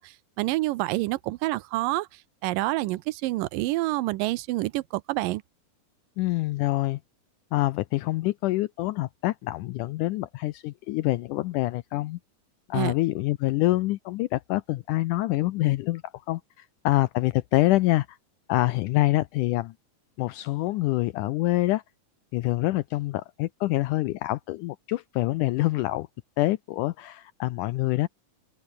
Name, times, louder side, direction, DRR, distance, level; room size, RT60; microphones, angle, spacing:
voice 1, 0.0-2.1 2.4-5.4 12.7-12.9, right 19 dB, 85° right, 2.3 m, -27 dB
voice 2, 6.2-7.0 7.5-12.2 12.7-18.2 18.5-19.7 20.2-21.8 22.3-26.1 26.4-28.1, left 18 dB, 80° left, 2.1 m, -26 dB
omnidirectional pair, 3.9 m